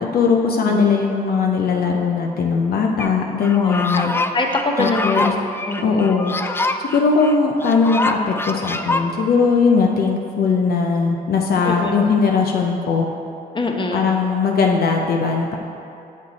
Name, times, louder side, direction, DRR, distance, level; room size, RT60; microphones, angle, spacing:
voice 1, 0.0-4.1 4.8-5.3 5.8-13.1 13.9-15.6, left 5 dB, 65° left, 1 dB, 0.7 m, -19 dB
sound 1, 3.0-3.1 3.4-9.0, left 2 dB, 15° left, 0.4 m, -25 dB
voice 2, 3.5-5.4 5.7-6.1 11.6-12.0 13.5-14.1, left 2 dB, 30° left, 2 dB, 0.9 m, -24 dB
7.6 x 6.5 x 4.1 m, 2.6 s
cardioid pair, 80°, 17 cm